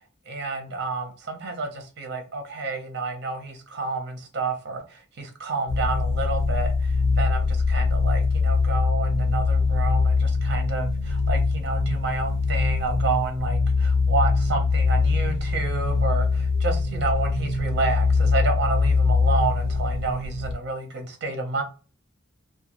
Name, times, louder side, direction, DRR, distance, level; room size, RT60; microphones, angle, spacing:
voice 1, 0.3-21.6, right 3 dB, 55° right, 0.7 m, -30 dB
sound 1, 5.7-20.5, left 4 dB, 85° left, 0.9 m, -23 dB
2.2 x 2.2 x 2.9 m
head